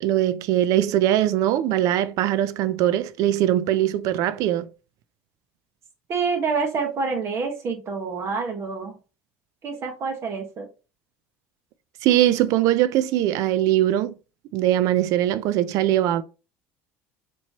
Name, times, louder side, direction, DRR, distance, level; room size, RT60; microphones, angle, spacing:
voice 1, 0.0-4.7 12.0-14.1 14.5-16.2, right 12 dB, 65° right, 0.4 m, -21 dB
voice 2, 6.1-9.0 9.6-10.7, right 5 dB, 45° right, 1.4 m, -27 dB
4.3 x 3.0 x 2.9 m
supercardioid pair, 95°, 6 cm